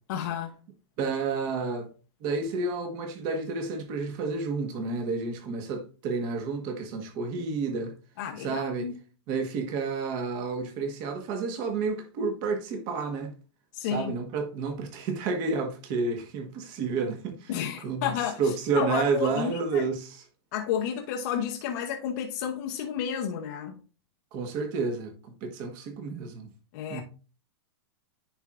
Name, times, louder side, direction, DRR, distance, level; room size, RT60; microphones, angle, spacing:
voice 1, 0.1-0.5 8.2-8.9 13.7-14.1 17.5-19.8 20.5-23.8 26.7-27.0, left 8 dB, 40° left, 0.8 m, -31 dB
voice 2, 1.0-1.9 2.2-7.9 8.4-8.9 9.3-13.3 13.9-17.6 17.8-20.2 24.3-26.5 26.9-27.0, right 4 dB, 30° right, 1.3 m, -30 dB
10.0 x 4.4 x 2.4 m
supercardioid pair, 165°, 14 cm